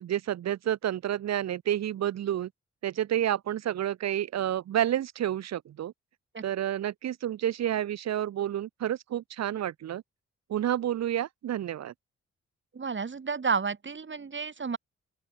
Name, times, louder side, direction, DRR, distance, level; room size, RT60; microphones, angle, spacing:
voice 1, 0.0-2.5 2.8-5.9 6.4-10.0 10.5-11.9, right 11 dB, 60° right, 0.7 m, -30 dB
voice 2, 12.7-14.8, right 5 dB, 40° right, 1.8 m, -31 dB
open air
supercardioid pair, 50°, 29 cm